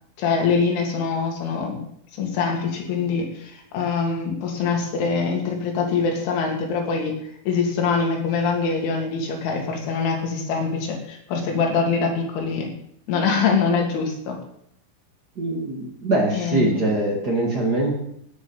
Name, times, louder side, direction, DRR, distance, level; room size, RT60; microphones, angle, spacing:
voice 1, 0.2-1.8 2.1-12.7 13.1-14.4 16.3-16.9, left 5 dB, 70° left, 1 dB, 5.1 m, -24 dB
voice 2, 15.3-18.0, right 2 dB, 50° right, 0 dB, 1.1 m, -23 dB
16.5 x 9.3 x 5.6 m, 0.71 s
omnidirectional pair, 5.7 m